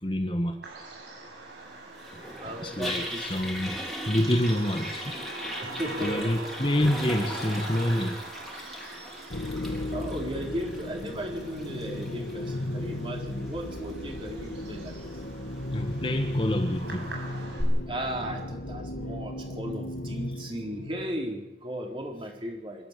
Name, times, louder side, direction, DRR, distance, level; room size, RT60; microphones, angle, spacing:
voice 1, 0.0-0.6 2.6-3.8 4.1-5.1 6.0-8.2 15.7-17.1, left 1 dB, 30° left, 1.5 m, -27 dB
Bird vocalization bird call bird song, 0.6-17.6, right 2 dB, 85° right, 7.9 m, -43 dB
Toilet flush, 2.0-17.2, equal, ahead, 3.9 m, -41 dB
voice 2, 2.4-3.2 5.6-6.5 9.9-15.1 17.9-22.9, equal, 30° right, 4.4 m, -36 dB
sound 1, 9.3-21.3, left 1 dB, 70° left, 1.8 m, -35 dB
26.0 x 13.0 x 8.5 m
head